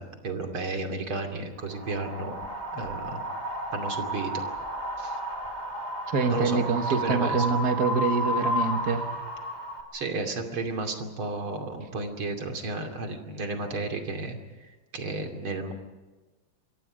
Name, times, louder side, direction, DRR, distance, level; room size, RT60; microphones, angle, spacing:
voice 1, 0.0-2.4 2.7-3.2 3.7-4.4 5.0-5.2 6.3-6.6 6.9-7.5 9.9-14.4 14.7-15.7, right 3 dB, 80° right, 4 dB, 3.6 m, -33 dB
Wind, 1.7-9.8, equal, 20° right, 3.3 m, -32 dB
voice 2, 6.1-9.0, right 5 dB, 50° right, 5 dB, 2.2 m, -25 dB
27.5 x 24.5 x 5.2 m, 1.2 s
omnidirectional pair, 2.3 m